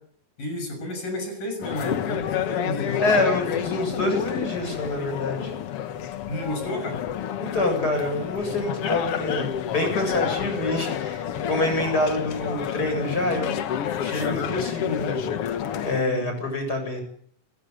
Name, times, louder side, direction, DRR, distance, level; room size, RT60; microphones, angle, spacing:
voice 1, 0.4-3.3 6.3-7.0 16.0-16.4, left 1 dB, 80° left, 6 dB, 8.2 m, -32 dB
sound 1, 1.6-16.0, left 9 dB, 60° left, 1.7 m, -29 dB
voice 2, 3.0-5.5 7.4-13.6 14.0-15.2 15.5-17.0, left 2 dB, 25° left, 5 dB, 8.4 m, -26 dB
29.5 x 15.5 x 8.2 m, 0.62 s
omnidirectional pair, 3.8 m